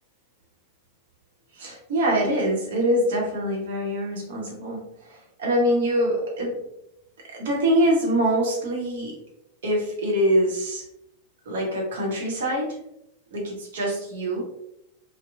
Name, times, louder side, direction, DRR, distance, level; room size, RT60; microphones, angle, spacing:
voice 1, 1.5-6.6 7.2-9.2 9.6-10.8 11.4-12.8 13.3-14.4, equal, 60° right, -2 dB, 0.9 m, -24 dB
2.9 x 2.1 x 2.3 m, 0.80 s
figure-of-eight pair, 90°, 0 cm